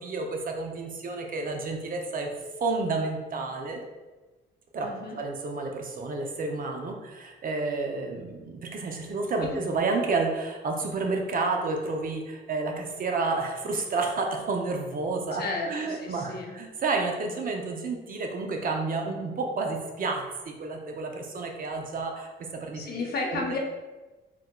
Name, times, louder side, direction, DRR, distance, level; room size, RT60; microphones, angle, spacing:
voice 1, 0.0-2.3 2.6-3.8 4.7-4.9 5.2-22.3 22.6-22.8 23.2-23.4, right 3 dB, 45° right, 2 dB, 0.5 m, -30 dB
voice 2, 4.8-5.2 9.4-9.6 15.3-16.5 22.7-23.6, left 3 dB, 50° left, 0 dB, 0.7 m, -33 dB
3.6 x 2.7 x 2.2 m, 1.2 s
cardioid pair, 90°, 20 cm